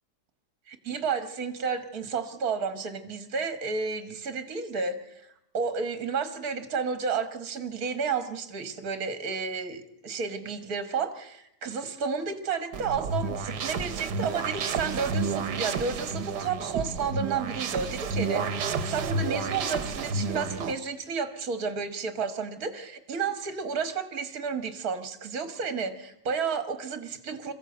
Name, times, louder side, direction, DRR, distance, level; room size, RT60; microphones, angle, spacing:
voice 1, 0.7-5.0 5.5-27.5, right 5 dB, 60° right, 10 dB, 2.0 m, -31 dB
sound 1, 12.7-20.7, right 4 dB, 80° right, 1.7 m, -31 dB
22.0 x 15.0 x 7.9 m, 0.82 s
omnidirectional pair, 1.8 m